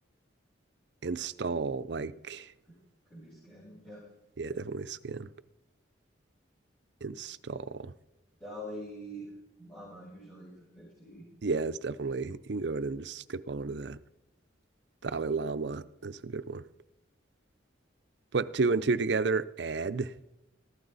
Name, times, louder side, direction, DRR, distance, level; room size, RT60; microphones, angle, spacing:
voice 1, 1.0-2.5 4.4-5.3 7.0-7.9 11.4-14.0 15.0-16.7 18.3-20.1, right 4 dB, 65° right, 0.6 m, -32 dB
voice 2, 3.1-4.0 4.5-4.7 8.4-9.3 9.6-11.3, equal, 5° left, 7.9 m, -45 dB
21.5 x 15.0 x 4.1 m
head